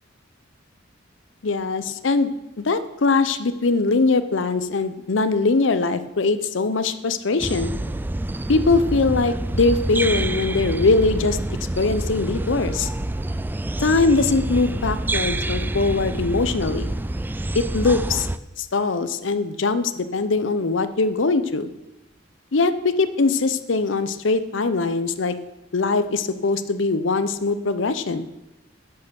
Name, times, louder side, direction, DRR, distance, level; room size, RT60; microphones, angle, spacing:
voice 1, 1.4-2.3 2.6-7.7 8.5-11.4 11.8-12.9 13.8-16.9 17.5-18.3 18.6-21.7 22.5-25.4 25.7-28.3, left 3 dB, 70° left, 13 dB, 0.7 m, -21 dB
sound 1, 7.4-18.4, right 1 dB, 10° right, 0.3 m, -27 dB
10.5 x 6.8 x 6.9 m, 0.95 s
head